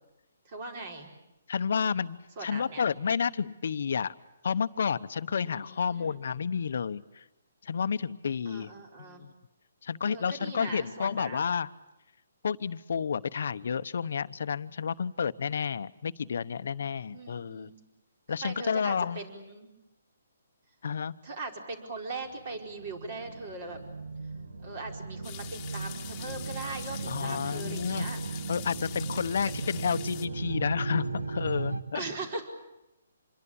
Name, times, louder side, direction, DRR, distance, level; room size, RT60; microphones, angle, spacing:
voice 1, 0.4-1.1 2.4-2.8 5.4-6.1 8.4-9.2 10.1-11.5 17.1-17.7 18.4-19.7 21.2-23.8 24.6-28.2 31.9-32.5, right 3 dB, 35° right, 3 dB, 4.7 m, -40 dB
voice 2, 1.5-4.1 4.4-7.2 7.6-8.7 9.0-9.3 9.8-11.7 12.4-17.7 18.3-19.2 20.8-21.1 27.1-28.1 28.5-32.0, left 6 dB, 60° left, 13 dB, 0.9 m, -31 dB
sound 1, 22.3-31.8, right 3 dB, 90° right, 2.2 m, -36 dB
sound 2, 25.2-30.3, left 12 dB, 20° left, 1.7 m, -44 dB
26.5 x 22.0 x 8.7 m, 0.93 s
hypercardioid pair, 165°, 0 cm